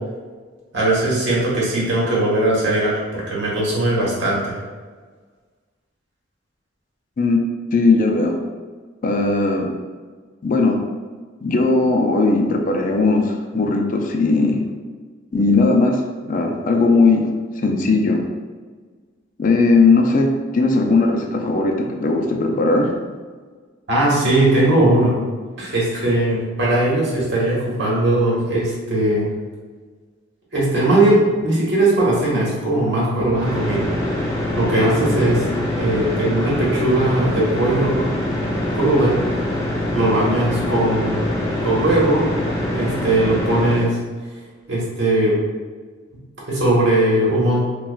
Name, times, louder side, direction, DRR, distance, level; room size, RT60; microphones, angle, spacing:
voice 1, 0.7-4.6 23.9-25.1 25.6-29.2 30.5-33.8 34.5-35.4 35.8-38.0 38.7-39.2 39.9-41.2 41.6-42.2 42.7-43.9 44.7-45.4 46.5-47.6, right 1 dB, 65° right, -6 dB, 1.4 m, -19 dB
voice 2, 7.7-8.3 9.0-9.7 10.4-10.8 11.4-14.6 15.3-16.0 16.3-17.2 17.6-18.2 19.4-23.0, left 3 dB, 45° left, 2 dB, 0.4 m, -17 dB
sound 1, 33.2-43.9, left 1 dB, 20° left, 0.8 m, -24 dB
5.6 x 2.3 x 2.4 m, 1.5 s
head